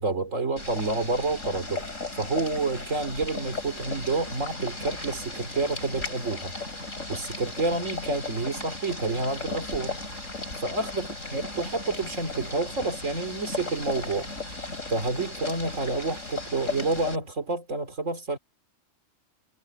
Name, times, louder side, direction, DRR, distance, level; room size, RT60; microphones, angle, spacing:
voice 1, 0.0-1.9 2.2-6.5 7.1-10.0 10.6-14.6 14.9-18.4, right 3 dB, 80° right, 3.3 m, -29 dB
Boiling, 0.6-17.2, left 3 dB, 80° left, 6.7 m, -36 dB
omnidirectional pair, 1.3 m